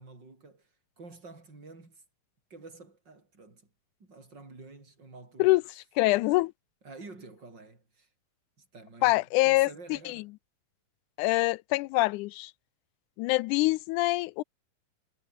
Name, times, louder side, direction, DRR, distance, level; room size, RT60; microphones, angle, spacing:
voice 1, 0.0-2.0 2.5-3.7 4.0-5.6 6.8-8.1 8.6-10.3, right 3 dB, 30° right, 7.1 m, -49 dB
voice 2, 6.0-6.5 9.0-9.7 10.1-10.2 11.2-12.5 13.2-14.4, left 20 dB, 85° left, 1.8 m, -25 dB
omnidirectional pair, 4.0 m